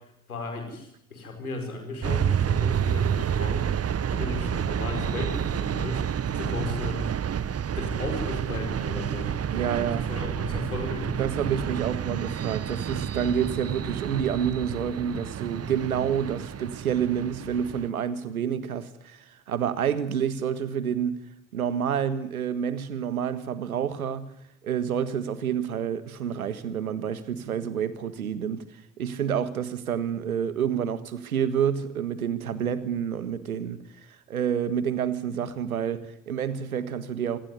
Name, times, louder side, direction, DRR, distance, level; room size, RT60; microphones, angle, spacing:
voice 1, 0.3-3.7 4.1-7.1 7.8-9.3 10.1-11.2, left 3 dB, 90° left, 5 dB, 5.3 m, -35 dB
sound 1, 2.0-17.9, right 8 dB, 35° right, 1.0 m, -29 dB
voice 2, 9.5-10.1 11.2-21.2 21.5-24.3 24.6-28.6 29.0-33.8 34.3-37.4, right 8 dB, 90° right, 13 dB, 1.6 m, -28 dB
26.5 x 18.5 x 9.7 m, 0.77 s
figure-of-eight pair, 45°, 42 cm